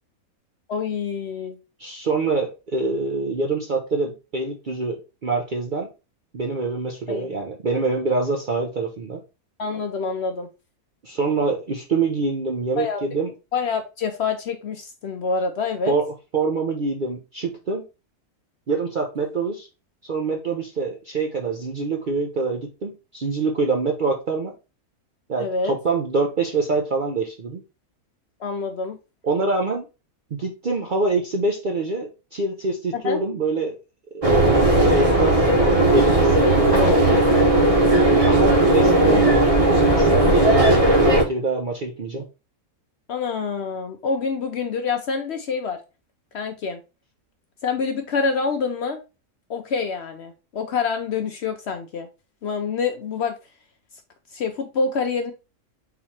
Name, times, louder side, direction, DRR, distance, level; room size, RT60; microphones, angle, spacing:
voice 1, 0.7-1.6 7.1-7.3 9.6-10.5 12.8-13.0 13.5-15.9 25.4-25.7 28.4-29.0 32.9-33.2 36.7-37.0 38.8-39.4 43.1-45.8 46.3-46.8 47.6-49.0 49.5-52.1 52.4-53.4 54.3-55.3, left 5 dB, 60° left, 6 dB, 0.7 m, -26 dB
voice 2, 1.8-5.9 6.3-9.2 11.0-13.3 15.9-16.1 16.3-17.8 18.7-19.7 20.0-24.5 25.3-27.6 29.2-29.9 30.3-33.8 34.1-34.2 34.5-35.4 35.9-37.1 38.2-39.5 39.9-42.3, right 3 dB, 50° right, 1 dB, 0.6 m, -25 dB
sound 1, 34.2-41.2, right 1 dB, 25° right, 1.0 m, -16 dB
4.0 x 3.0 x 4.2 m, 0.29 s
omnidirectional pair, 1.5 m